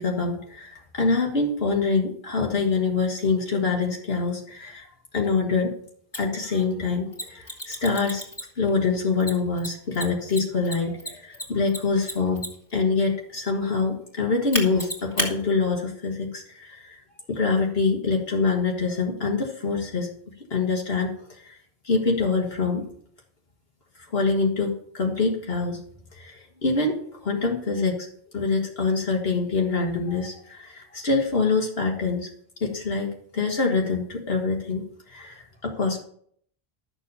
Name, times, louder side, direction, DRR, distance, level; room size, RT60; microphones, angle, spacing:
voice 1, 0.0-4.9 5.1-5.7 6.1-8.2 8.6-12.4 12.7-17.0 17.3-20.1 20.5-21.6 21.8-22.9 24.1-28.1 28.3-32.3 32.6-36.0, left 4 dB, 65° left, 0 dB, 1.8 m, -25 dB
Mechanisms, 6.1-6.2 7.1-8.7 9.2-12.7 14.5-15.3, equal, 15° left, 2.5 m, -31 dB
13.0 x 7.0 x 5.5 m, 0.63 s
omnidirectional pair, 1.1 m